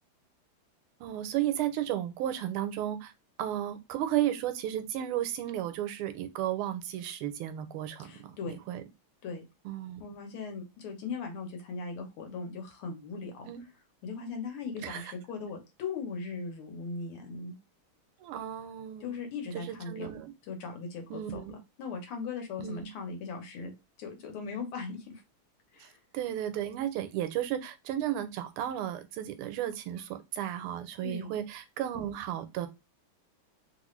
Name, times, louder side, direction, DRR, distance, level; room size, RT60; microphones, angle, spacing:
voice 1, 1.0-3.1 3.4-8.8 9.6-10.0 13.5-13.6 14.8-15.0 18.2-19.2 19.5-20.3 21.1-21.6 22.6-22.9 25.8-25.9 26.1-32.7, right 11 dB, 80° right, 10 dB, 1.5 m, -34 dB
voice 2, 8.0-8.6 9.2-9.4 10.0-13.5 14.0-17.6 19.0-20.1 20.5-23.7 24.0-25.2 25.7-26.0 31.0-31.3, left 4 dB, 75° left, 4 dB, 1.8 m, -39 dB
3.7 x 2.5 x 3.0 m, 0.24 s
omnidirectional pair, 2.4 m